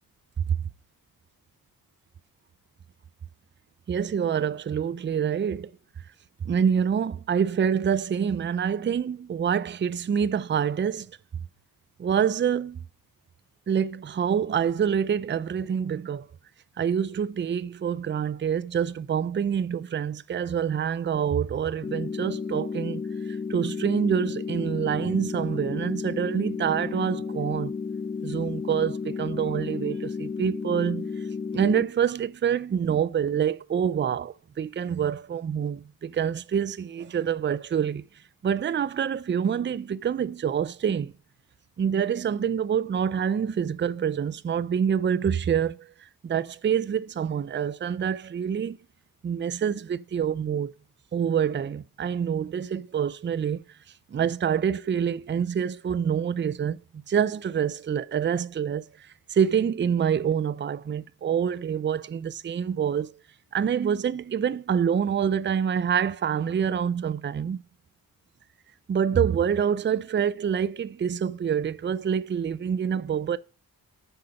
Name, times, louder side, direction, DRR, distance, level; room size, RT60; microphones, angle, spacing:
voice 1, 3.9-5.7 6.4-11.1 12.0-12.8 13.7-16.3 16.8-23.0 23.3-27.7 28.2-31.2 31.5-38.0 38.4-41.1 41.8-48.8 49.2-50.7 51.1-53.6 54.1-56.8 57.1-58.9 59.3-63.1 63.5-67.6 68.9-73.4, right 8 dB, 30° right, 0.4 m, -26 dB
sound 1, 21.8-31.8, left 5 dB, 20° left, 0.7 m, -33 dB
7.8 x 5.0 x 5.7 m
cardioid pair, 80°, 37 cm